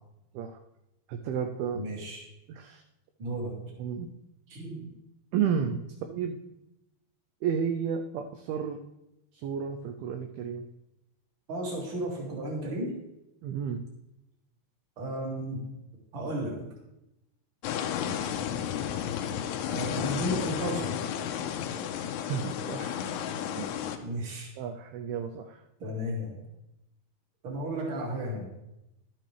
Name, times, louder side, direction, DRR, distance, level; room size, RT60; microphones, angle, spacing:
voice 1, 1.1-1.8 2.5-2.8 3.8-4.1 5.3-6.4 7.4-8.8 9.3-10.7 13.4-13.8 22.1-23.0 23.6-24.0 24.6-25.6, right 7 dB, 80° right, 5 dB, 2.3 m, -32 dB
voice 2, 1.7-2.2 3.2-3.6 4.5-4.9 11.5-12.9 15.0-15.7 16.1-16.7 19.7-20.9 24.0-24.5 25.8-26.3 27.4-28.5, right 1 dB, 35° right, -2 dB, 2.5 m, -33 dB
sound 1, 17.6-24.0, left 9 dB, 90° left, 2.7 m, -32 dB
12.0 x 9.1 x 3.3 m, 0.88 s
omnidirectional pair, 4.8 m